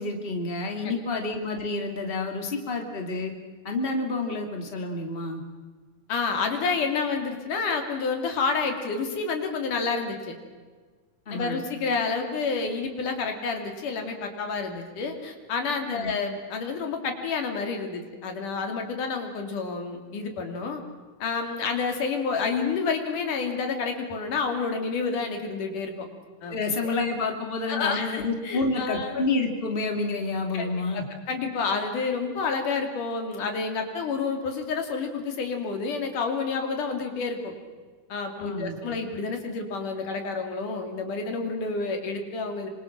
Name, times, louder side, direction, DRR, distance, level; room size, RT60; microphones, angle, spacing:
voice 1, 0.0-3.3 3.6-5.4 11.3-11.6 15.9-16.1 26.5-31.1 38.4-39.0, left 3 dB, 20° left, 3 dB, 2.7 m, -29 dB
voice 2, 6.1-10.3 11.3-20.8 21.2-26.1 26.4-26.6 26.8-26.9 27.7-29.2 30.5-31.0 31.3-37.5 38.1-42.7, left 4 dB, 80° left, 4 dB, 4.4 m, -29 dB
27.0 x 25.5 x 6.1 m, 1.4 s
omnidirectional pair, 3.6 m